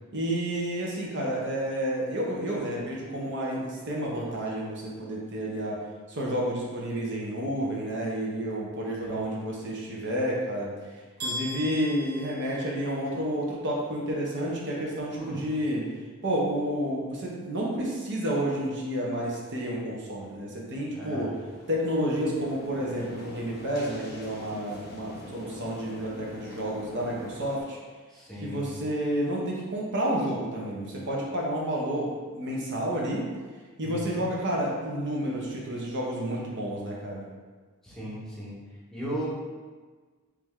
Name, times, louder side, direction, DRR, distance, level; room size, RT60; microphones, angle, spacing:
voice 1, 0.1-5.8 6.1-10.7 11.2-15.9 16.2-21.4 21.7-27.8 28.4-32.1 32.3-33.2 33.8-37.2, equal, 55° right, -3 dB, 0.7 m, -30 dB
sound 1, 11.2-13.2, equal, 75° right, 1.5 m, -37 dB
voice 2, 21.0-21.3 28.1-28.7 33.8-34.2 37.8-38.6 38.9-39.3, equal, ahead, -7 dB, 0.8 m, -36 dB
sound 2, 21.1-27.6, left 1 dB, 45° left, 0.5 m, -45 dB
3.3 x 3.1 x 3.5 m, 1.4 s
head